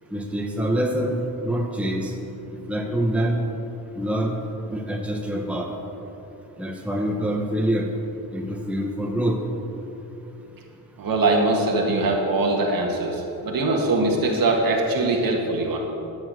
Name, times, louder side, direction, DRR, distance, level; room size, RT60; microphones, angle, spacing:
voice 1, 0.1-2.1 2.7-3.4 3.9-4.4 4.7-5.7 6.6-7.9 8.3-9.4, right 1 dB, 5° right, 1 dB, 1.0 m, -25 dB
voice 2, 11.0-15.8, right 2 dB, 60° right, 0 dB, 1.5 m, -22 dB
10.5 x 7.1 x 6.3 m, 2.9 s
cardioid pair, 95°, 39 cm